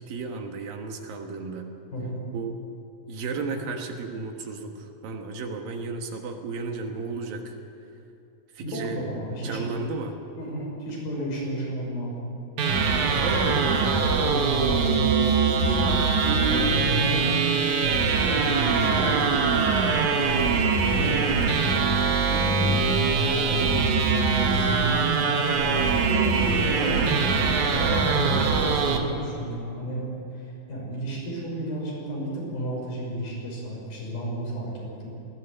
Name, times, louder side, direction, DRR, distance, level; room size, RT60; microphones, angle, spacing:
voice 1, 0.0-1.7 2.3-2.6 3.1-7.5 8.5-9.0 9.4-10.2 13.2-13.8 18.6-19.6 21.2-21.4 26.8-27.2, right 4 dB, 75° right, 4 dB, 3.3 m, -34 dB
voice 2, 1.9-2.2 8.6-9.7 10.4-12.3 14.0-17.5 18.3-19.6 20.8-21.3 22.3-23.0 23.3-25.0 26.1-35.1, right 1 dB, 80° left, -3 dB, 7.6 m, -32 dB
sound 1, 12.6-29.0, right 4 dB, 60° right, 2.8 m, -22 dB
20.0 x 16.5 x 8.1 m, 2.7 s
omnidirectional pair, 4.1 m